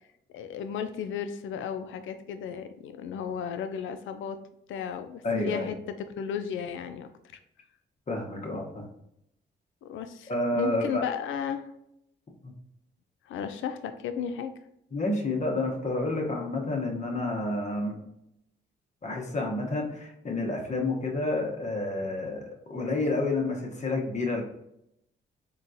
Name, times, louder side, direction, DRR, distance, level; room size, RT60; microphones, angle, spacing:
voice 1, 0.3-4.4 4.7-5.8 6.2-7.1 9.8-11.7 13.3-14.5, left 7 dB, 75° left, 9 dB, 0.4 m, -34 dB
voice 2, 5.2-5.7 8.1-8.9 10.3-11.0 12.4-12.5 14.9-18.0 19.0-24.4, left 2 dB, 35° left, 0 dB, 1.0 m, -29 dB
3.8 x 2.3 x 2.6 m, 0.78 s
cardioid pair, 65°, 20 cm